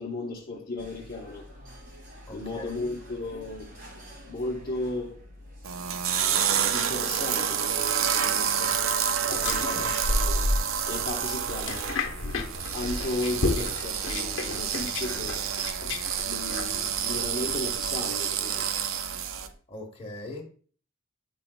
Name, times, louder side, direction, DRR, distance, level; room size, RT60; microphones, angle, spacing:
voice 1, 0.0-1.5 2.3-3.7 4.2-5.2 6.1-10.5 10.9-12.0 12.7-15.5 16.2-18.7, left 2 dB, 45° left, 0.8 m, -35 dB
sound 1, 0.8-19.5, left 1 dB, 45° right, 1.8 m, -48 dB
voice 2, 2.3-2.9 19.7-20.4, left 2 dB, 30° left, 1.3 m, -40 dB
sound 2, 5.6-19.5, right 8 dB, 85° right, 0.5 m, -29 dB
sound 3, 9.3-17.9, left 2 dB, 75° left, 0.8 m, -32 dB
8.8 x 5.4 x 2.2 m
head